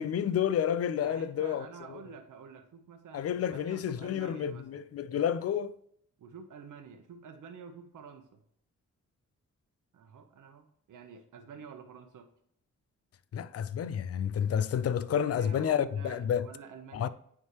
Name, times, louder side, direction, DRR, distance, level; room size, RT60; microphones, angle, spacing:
voice 1, 0.0-2.0 3.1-5.7 13.3-16.5 16.9-17.1, left 9 dB, 50° left, 0.5 m, -30 dB
voice 2, 1.0-4.8 6.2-8.4 9.9-12.3 14.8-17.1, right 6 dB, 80° right, 0.9 m, -49 dB
9.4 x 3.6 x 2.9 m
cardioid pair, 80°, 31 cm